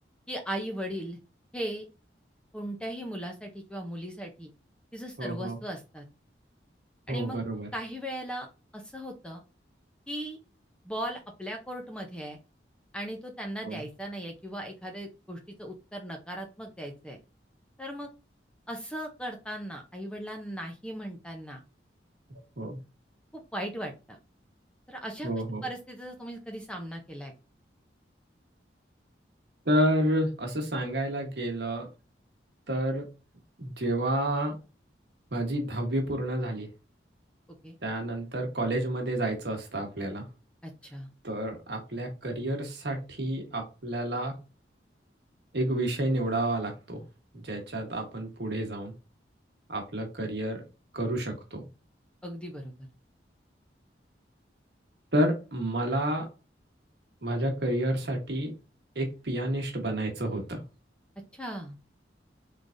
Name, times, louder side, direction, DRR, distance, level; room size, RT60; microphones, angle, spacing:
voice 1, 0.3-1.2 1.5-1.8 2.5-4.5 4.9-6.0 7.1-7.4 7.7-8.5 8.7-9.4 10.1-10.4 10.8-12.4 12.9-17.2 17.8-18.1 18.7-21.6 23.3-24.2 24.9-25.3 25.6-27.3 37.6-37.8 40.6-41.1 52.2-52.7 61.3-61.8, equal, 5° left, 3 dB, 0.6 m, -38 dB
voice 2, 5.2-5.6 7.1-7.7 13.6-13.8 22.6-22.8 25.2-25.6 29.7-31.9 32.7-33.1 33.6-34.5 35.3-36.7 37.8-40.2 41.2-44.3 45.5-47.0 47.3-48.9 49.7-50.6 50.9-51.6 55.1-56.3 57.2-58.5 58.9-60.6, right 1 dB, 65° right, 2 dB, 1.3 m, -30 dB
3.8 x 3.3 x 2.6 m, 0.31 s
head